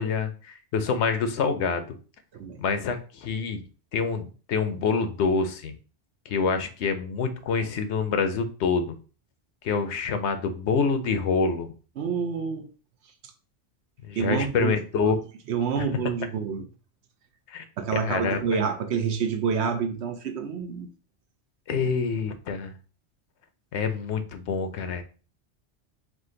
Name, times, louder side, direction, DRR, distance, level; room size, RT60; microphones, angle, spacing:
voice 1, 0.0-2.0 2.6-3.6 3.9-5.7 6.3-9.0 9.6-11.7 14.1-15.2 15.8-15.9 17.5-17.6 17.9-18.7 21.7-22.7 23.7-25.0, left 5 dB, 70° left, 0.9 m, -26 dB
voice 2, 12.0-12.7 14.2-15.1 15.5-16.6 17.8-20.9, right 6 dB, 70° right, 0.9 m, -28 dB
4.9 x 2.3 x 3.8 m
omnidirectional pair, 1.2 m